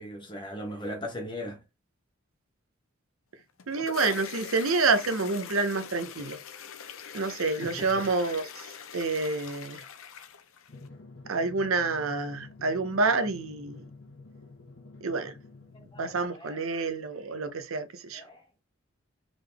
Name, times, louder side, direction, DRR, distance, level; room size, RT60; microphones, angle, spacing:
voice 1, 0.0-1.6 7.5-8.4 8.8-8.9 15.9-16.6 18.1-18.4, equal, 20° left, 1.2 m, -39 dB
sound 1, 3.4-10.9, left 7 dB, 80° left, 0.6 m, -43 dB
voice 2, 3.7-6.4 7.1-8.5 8.9-9.8 11.3-13.8 15.0-15.3 16.0-18.2, right 3 dB, 80° right, 0.7 m, -28 dB
Drum, 10.7-16.3, left 3 dB, 60° left, 1.0 m, -49 dB
3.9 x 3.5 x 3.3 m
head